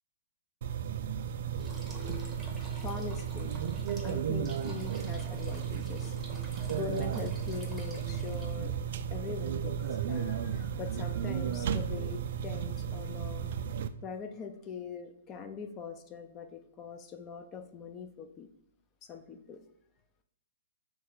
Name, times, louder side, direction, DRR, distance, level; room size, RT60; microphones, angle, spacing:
sound 1, 0.6-13.9, right 8 dB, 60° right, 0.3 m, -34 dB
sound 2, 1.5-8.7, right 1 dB, 10° right, 0.9 m, -50 dB
voice 1, 2.8-3.5 4.0-6.1 6.7-8.7 9.1-13.5 14.0-18.5 19.0-19.6, left 6 dB, 25° left, 6 dB, 0.5 m, -42 dB
3.3 x 3.0 x 3.9 m, 0.82 s
hypercardioid pair, 135°, 0 cm